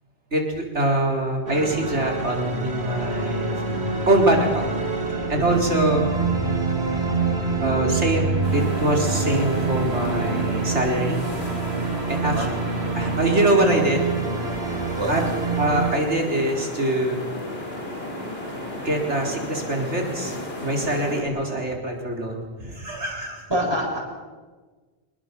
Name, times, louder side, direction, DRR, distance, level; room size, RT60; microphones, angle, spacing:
voice 1, 0.3-3.6 4.1-4.7 5.3-6.1 7.6-11.2 12.1-12.5 13.0-14.0 15.1-15.2 15.6-17.2 18.7-20.4 20.6-23.4, right 1 dB, 80° right, 1 dB, 4.7 m, -23 dB
sound 1, 1.5-15.9, right 4 dB, 65° right, 3.3 m, -26 dB
sound 2, 8.4-21.2, left 1 dB, 60° left, 5.5 m, -34 dB
voice 2, 23.5-24.0, equal, 20° right, -2 dB, 7.3 m, -25 dB
26.0 x 21.0 x 7.0 m, 1.4 s
omnidirectional pair, 1.1 m